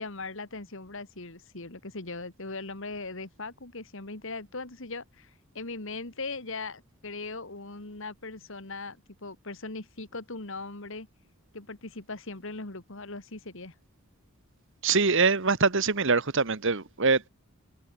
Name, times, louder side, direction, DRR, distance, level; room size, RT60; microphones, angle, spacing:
voice 1, 0.0-11.1 11.5-13.7, left 3 dB, 60° left, 2.3 m, -39 dB
voice 2, 14.8-17.3, right 4 dB, 60° right, 1.4 m, -24 dB
head